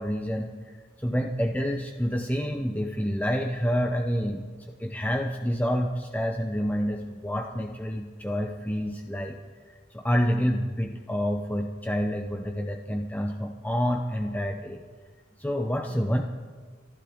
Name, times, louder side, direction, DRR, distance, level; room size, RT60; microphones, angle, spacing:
voice 1, 0.0-9.4 9.7-14.9 15.4-16.2, equal, 10° left, 3 dB, 0.7 m, -28 dB
27.0 x 12.0 x 3.6 m, 1.5 s
head